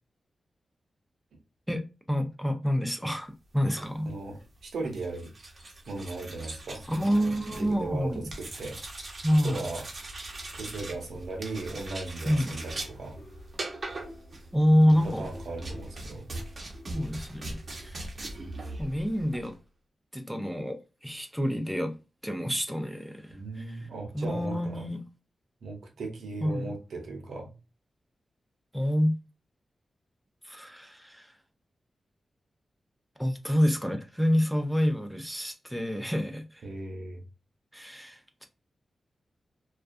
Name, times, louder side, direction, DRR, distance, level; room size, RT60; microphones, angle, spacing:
voice 1, 1.7-4.1 6.9-8.2 9.2-9.6 12.3-12.5 14.5-15.3 16.9-18.1 18.8-19.5 20.1-22.0 22.2-23.8 24.1-25.0 26.4-26.7 28.7-29.1 30.4-31.3 33.2-36.6 37.7-38.5, equal, ahead, 0.4 m, -27 dB
sound 1, 3.6-19.6, right 2 dB, 50° right, 0.7 m, -41 dB
voice 2, 4.1-5.3 5.9-8.8 9.3-9.8 10.5-13.2 14.8-16.3 23.3-24.8 25.6-27.5 36.6-37.2, right 3 dB, 85° right, 0.7 m, -37 dB
sound 2, 11.1-17.9, left 2 dB, 40° left, 0.9 m, -52 dB
2.3 x 2.2 x 2.5 m
cardioid pair, 80°, 0 cm